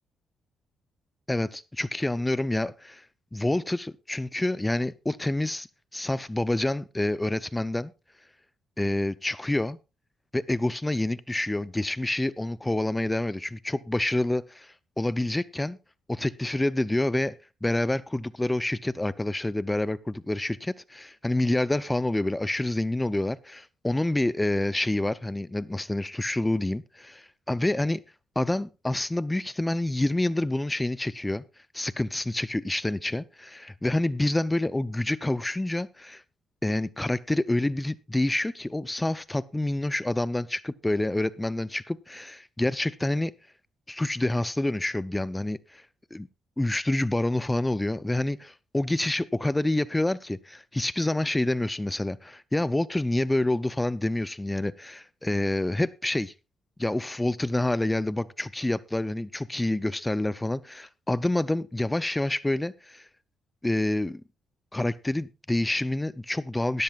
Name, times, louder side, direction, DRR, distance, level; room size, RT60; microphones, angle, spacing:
voice 1, 1.3-3.0 3.3-5.7 5.9-7.9 8.8-9.8 10.3-15.8 16.1-17.4 17.6-20.6 21.2-28.0 28.4-31.4 31.7-36.2 36.6-43.3 43.9-45.8 46.1-46.3 46.6-56.3 56.8-63.1 63.6-64.2 64.7-66.8, left 1 dB, 10° left, 0.5 m, -27 dB
17.5 x 13.5 x 2.4 m
cardioid pair, 90°, 0 cm